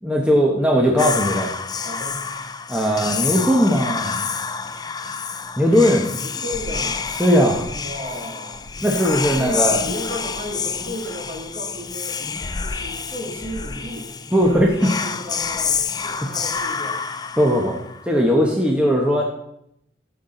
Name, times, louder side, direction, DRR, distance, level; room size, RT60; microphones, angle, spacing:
voice 1, 0.0-1.5 2.7-4.2 5.6-6.1 7.2-7.7 8.8-9.8 14.3-14.9 16.2-16.3 17.4-17.8 18.0-19.2, equal, 5° right, -1 dB, 1.1 m, -18 dB
Whispering, 1.0-18.1, left 6 dB, 25° left, 0.4 m, -28 dB
voice 2, 1.8-2.3 6.1-7.2 7.6-8.7 9.4-12.2 12.6-14.1 14.4-17.0, equal, 45° right, -1 dB, 2.7 m, -34 dB
13.0 x 7.5 x 3.9 m, 0.77 s
head